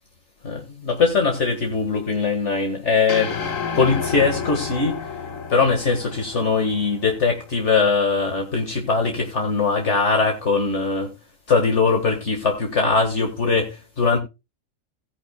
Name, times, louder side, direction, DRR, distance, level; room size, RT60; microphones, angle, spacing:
voice 1, 0.4-5.0 5.5-11.1 11.5-14.2, left 4 dB, 60° left, 2.0 m, -21 dB
sound 1, 3.1-7.5, left 6 dB, 80° left, 1.8 m, -31 dB
17.0 x 9.8 x 2.2 m
omnidirectional pair, 1.4 m